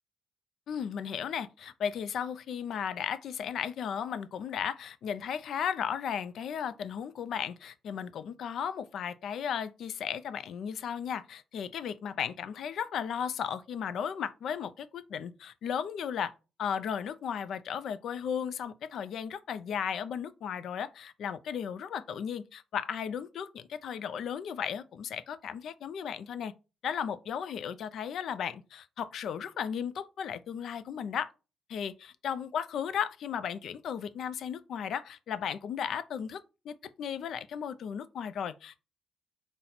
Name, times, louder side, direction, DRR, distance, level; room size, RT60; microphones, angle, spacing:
voice 1, 0.7-16.3 16.6-26.5 26.8-31.3 31.7-38.8, left 8 dB, 70° left, 0.3 m, -35 dB
4.0 x 2.0 x 4.2 m
cardioid pair, 90°, 0 cm